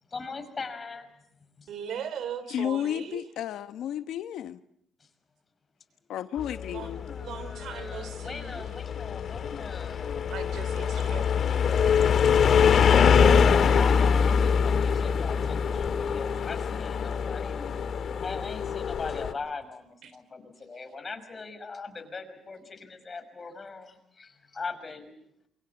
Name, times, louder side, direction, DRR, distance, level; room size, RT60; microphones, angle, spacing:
voice 1, 0.1-1.1 1.6-1.7 5.0-5.1 6.4-10.3 13.7-17.9 18.2-25.1, left 4 dB, 35° left, 8 dB, 5.8 m, -40 dB
voice 2, 1.7-3.2 6.7-6.9 7.2-8.7 10.3-12.0 12.3-12.4 20.0-20.1, right 8 dB, 75° right, 13 dB, 3.7 m, -39 dB
voice 3, 2.5-4.6 6.1-7.1, left 10 dB, 80° left, 11 dB, 1.1 m, -32 dB
sound 1, 6.4-19.3, left 6 dB, 55° left, 2.0 m, -24 dB
28.0 x 24.0 x 7.1 m, 0.71 s
cardioid pair, 90°, 0 cm